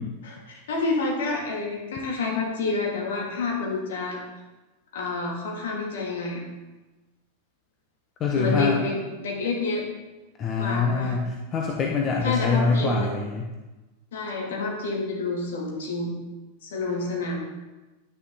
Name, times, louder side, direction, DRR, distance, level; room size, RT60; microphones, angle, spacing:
voice 1, 0.2-4.2 4.9-6.4 8.3-9.8 10.6-11.1 12.2-13.1 14.1-16.2 16.6-17.4, left 3 dB, 60° left, -2 dB, 3.0 m, -28 dB
voice 2, 8.2-8.8 10.4-13.5, left 4 dB, 30° left, 0 dB, 1.2 m, -24 dB
10.5 x 10.0 x 4.1 m, 1.1 s
figure-of-eight pair, 90°, 0 cm